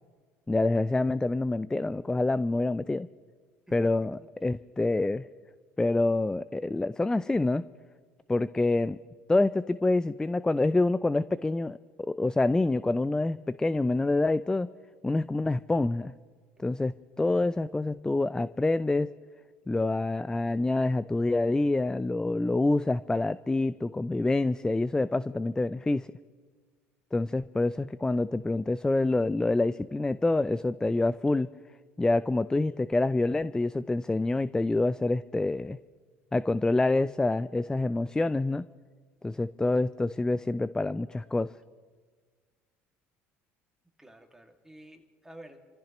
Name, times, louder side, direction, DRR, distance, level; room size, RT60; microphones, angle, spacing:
voice 1, 0.5-3.1 3.7-5.3 5.8-7.6 8.3-9.0 9.3-14.7 15.0-16.1 16.6-19.1 19.7-26.1 27.1-31.5 32.0-35.8 36.3-38.7 39.2-41.5, left 2 dB, 10° left, 17 dB, 0.3 m, -27 dB
voice 2, 39.3-39.7 44.0-45.7, right 1 dB, 5° right, 3 dB, 2.1 m, -51 dB
29.0 x 15.0 x 3.0 m, 1.5 s
hypercardioid pair, 70°, 7 cm